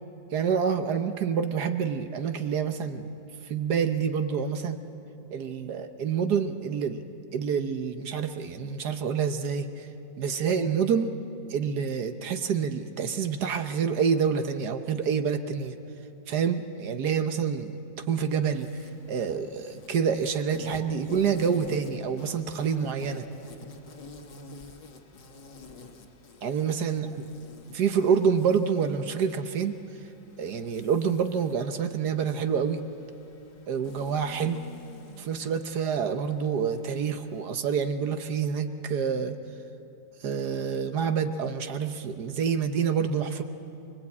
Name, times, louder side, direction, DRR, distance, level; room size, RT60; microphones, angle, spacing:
voice 1, 0.3-3.1 3.4-4.8 5.3-7.0 7.3-9.9 10.2-11.1 11.5-15.7 16.3-17.8 18.1-23.3 26.4-27.1 27.7-29.7 30.4-32.8 33.7-34.6 35.2-39.4 40.2-43.4, right 6 dB, 65° right, 8 dB, 1.4 m, -27 dB
Insect, 18.5-37.4, left 3 dB, 70° left, 2.3 m, -49 dB
23.5 x 22.5 x 8.5 m, 2.7 s
omnidirectional pair, 2.0 m